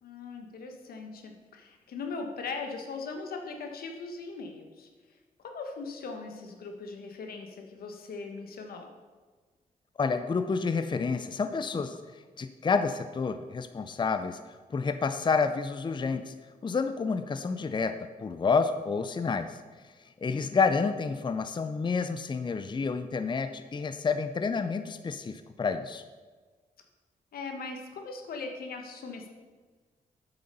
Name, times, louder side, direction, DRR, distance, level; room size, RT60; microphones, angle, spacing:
voice 1, 0.0-4.9 5.4-8.9 20.3-20.6 27.3-29.3, left 4 dB, 85° left, 4 dB, 1.3 m, -40 dB
voice 2, 10.0-14.4 14.7-16.3 16.6-19.6 20.2-26.0, left 5 dB, 30° left, 10 dB, 0.5 m, -29 dB
8.3 x 6.8 x 5.4 m, 1.4 s
cardioid pair, 70°, 15 cm